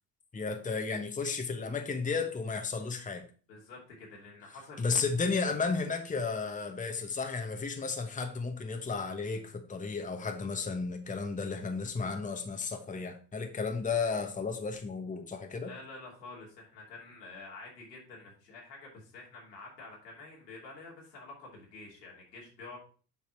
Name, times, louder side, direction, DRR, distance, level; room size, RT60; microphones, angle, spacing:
voice 1, 0.3-3.2 4.8-15.7, left 4 dB, 15° left, 5 dB, 1.1 m, -33 dB
voice 2, 3.5-5.0 15.5-22.8, left 3 dB, 85° left, -3 dB, 2.7 m, -48 dB
7.5 x 4.6 x 4.3 m, 0.40 s
hypercardioid pair, 65°, 48 cm